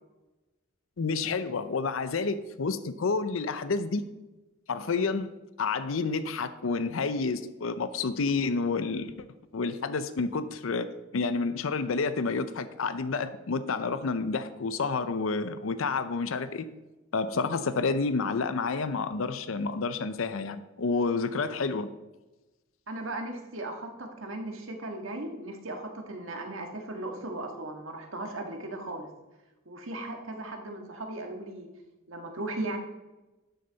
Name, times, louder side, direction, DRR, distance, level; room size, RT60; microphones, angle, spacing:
voice 1, 1.0-4.0 4.7-5.3 5.6-9.1 9.5-10.9 11.1-16.7 17.1-21.9, left 4 dB, 85° left, 12 dB, 0.6 m, -29 dB
voice 2, 22.9-29.1 29.7-31.7 32.1-32.8, right 2 dB, 85° right, 3 dB, 1.6 m, -37 dB
12.0 x 6.7 x 4.0 m, 1.1 s
head